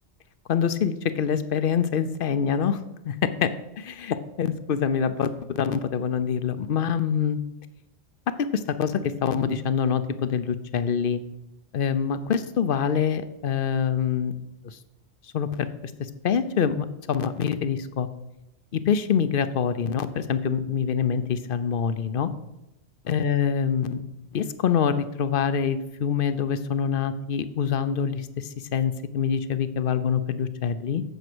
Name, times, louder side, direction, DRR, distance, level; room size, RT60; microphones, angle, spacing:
voice 1, 0.5-2.8 3.0-3.5 3.8-7.4 8.4-11.2 11.7-14.3 14.6-14.8 15.3-15.7 16.2-18.1 18.7-22.3 23.0-24.0 24.3-31.0, left 7 dB, 60° left, 12 dB, 0.8 m, -25 dB
7.9 x 7.3 x 6.1 m, 0.91 s
omnidirectional pair, 1.2 m